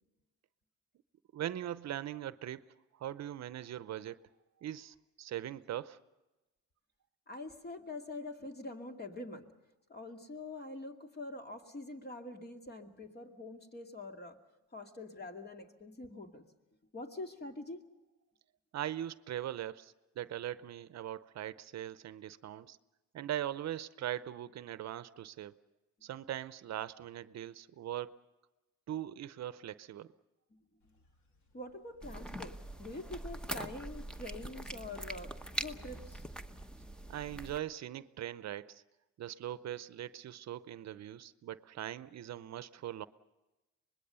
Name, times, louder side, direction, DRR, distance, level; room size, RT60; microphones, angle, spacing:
voice 1, 1.3-2.6 3.0-4.2 4.6-6.0 18.7-22.8 23.1-25.5 26.0-28.1 28.9-30.1 37.1-38.8 39.2-43.1, right 11 dB, 60° right, 0.7 m, -40 dB
voice 2, 7.3-9.5 9.9-14.4 14.7-16.4 16.9-17.8 30.5-30.6 31.5-35.3 35.6-36.2, left 2 dB, 35° left, 2.3 m, -45 dB
sound 1, 30.8-34.2, left 2 dB, 70° left, 2.8 m, -62 dB
sound 2, 32.0-37.6, right 1 dB, 5° left, 0.9 m, -43 dB
24.5 x 20.5 x 6.9 m
cardioid pair, 90°, 30 cm